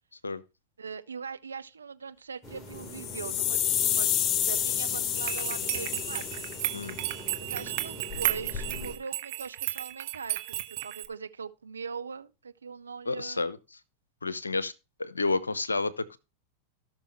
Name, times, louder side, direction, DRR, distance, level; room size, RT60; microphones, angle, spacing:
voice 1, 0.8-4.1 4.4-6.5 7.4-13.5, right 5 dB, 75° right, 0.7 m, -41 dB
sound 1, 2.4-9.0, left 2 dB, 15° left, 2.8 m, -43 dB
sound 2, 2.8-7.0, left 10 dB, 35° left, 0.6 m, -29 dB
sound 3, 5.1-11.1, right 16 dB, 50° right, 1.2 m, -34 dB
voice 2, 13.1-13.6 14.2-14.7 15.0-16.2, left 3 dB, 75° left, 0.8 m, -30 dB
17.5 x 6.1 x 3.1 m
figure-of-eight pair, 90°, 0 cm